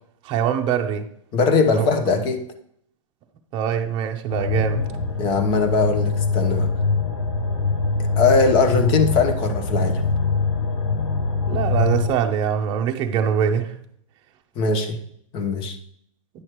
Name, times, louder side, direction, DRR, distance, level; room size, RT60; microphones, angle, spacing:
voice 1, 0.2-1.0 1.7-1.9 3.5-4.9 11.5-13.7, right 8 dB, 30° right, 0.8 m, -23 dB
voice 2, 1.3-2.5 5.2-6.7 8.0-10.0 14.6-15.0 15.3-15.8, left 4 dB, 30° left, 1.0 m, -20 dB
sound 1, 4.3-12.1, left 4 dB, 70° left, 1.1 m, -23 dB
9.9 x 6.4 x 3.1 m
hypercardioid pair, 145°, 17 cm